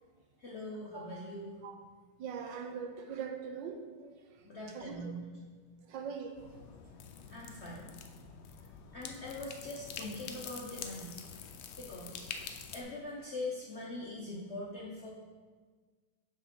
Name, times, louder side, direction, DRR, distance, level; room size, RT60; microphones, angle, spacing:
voice 1, 0.4-1.6 4.4-5.2 7.3-7.9 8.9-11.1 11.8-12.3 12.7-15.1, left 2 dB, 55° left, -4 dB, 0.7 m, -42 dB
voice 2, 2.2-4.1 4.7-5.1 5.9-6.4, right 6 dB, 75° right, 5 dB, 1.2 m, -41 dB
sound 1, 6.4-12.8, left 6 dB, 90° left, 1.5 m, -46 dB
6.4 x 3.8 x 5.8 m, 1.5 s
omnidirectional pair, 2.2 m